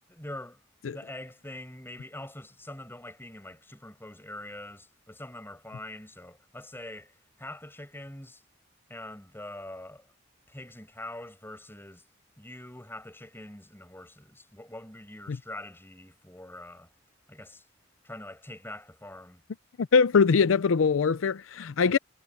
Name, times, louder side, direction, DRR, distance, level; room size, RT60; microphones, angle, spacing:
voice 1, 0.1-0.6 0.9-8.4 8.9-10.1 10.5-12.1 12.4-16.9 17.3-17.6 18.0-19.4 21.9-22.0, left 1 dB, 10° left, 5.4 m, -44 dB
voice 2, 19.9-22.0, left 5 dB, 80° left, 0.5 m, -22 dB
head